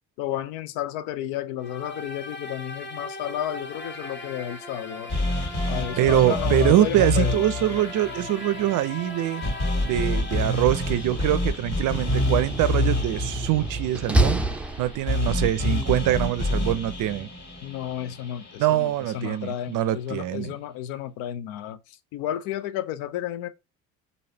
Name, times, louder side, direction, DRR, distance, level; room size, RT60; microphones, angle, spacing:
voice 1, 0.2-5.1 5.7-7.3 10.5-10.6 17.6-21.8 22.1-23.5, left 11 dB, 75° left, 0.5 m, -32 dB
sound 1, 1.6-11.6, left 3 dB, 30° left, 1.1 m, -38 dB
sound 2, 5.1-19.3, left 1 dB, 55° left, 2.1 m, -28 dB
voice 2, 6.0-9.4 9.8-14.4 14.8-17.3 18.6-20.6, right 14 dB, 60° right, 0.5 m, -24 dB
Slam, 10.7-15.4, right 2 dB, 5° right, 0.5 m, -28 dB
3.2 x 2.7 x 2.6 m
hypercardioid pair, 60°, 36 cm